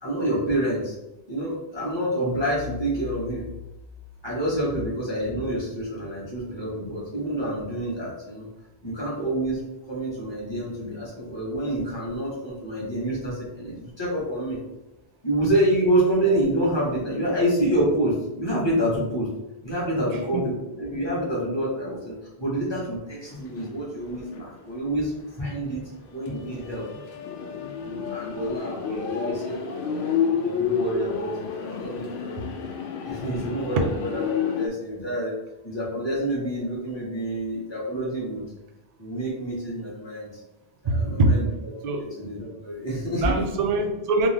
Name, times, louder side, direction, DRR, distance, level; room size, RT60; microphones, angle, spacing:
voice 1, 0.0-0.9 1.3-3.5 4.2-8.5 8.8-14.6 15.2-19.3 19.6-25.1 25.4-26.8 27.8-32.3 33.0-35.3 35.6-38.4 39.0-40.4 40.8-41.5 42.0-43.3, right 1 dB, 25° left, -6 dB, 1.5 m, -27 dB
sound 1, 2.3-5.1, left 7 dB, 80° right, 1.2 m, -41 dB
sound 2, 23.3-24.6 24.9-25.0 25.7-34.7, left 7 dB, 65° left, 0.7 m, -30 dB
voice 2, 40.9-41.3 41.8-42.1 43.2-44.3, right 3 dB, 50° right, 5 dB, 0.5 m, -23 dB
3.7 x 2.9 x 3.4 m, 0.99 s
omnidirectional pair, 1.1 m